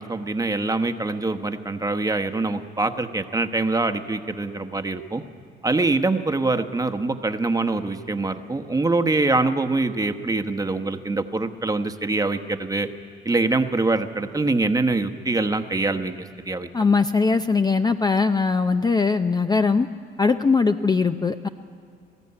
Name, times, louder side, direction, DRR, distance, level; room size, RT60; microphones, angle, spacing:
voice 1, 0.0-5.2 5.6-12.9 13.2-16.2 16.5-16.7, right 3 dB, 20° right, 8 dB, 1.1 m, -24 dB
voice 2, 16.7-19.9 20.2-21.5, left 4 dB, 20° left, 8 dB, 0.5 m, -20 dB
20.5 x 14.5 x 9.7 m, 2.3 s
cardioid pair, 90°, 20 cm